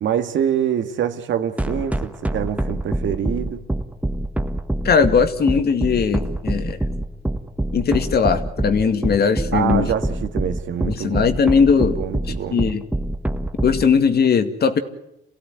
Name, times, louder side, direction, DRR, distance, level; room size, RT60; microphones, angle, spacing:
voice 1, 0.0-3.7 9.5-11.3 11.8-12.6, right 9 dB, 70° right, 2.0 m, -25 dB
sound 1, 1.6-13.8, right 1 dB, 5° right, 1.6 m, -24 dB
voice 2, 4.8-6.8 7.7-9.9 10.9-12.0 12.5-12.8 13.6-14.8, left 6 dB, 55° left, 2.3 m, -18 dB
28.5 x 16.5 x 9.5 m
cardioid pair, 90°, 20 cm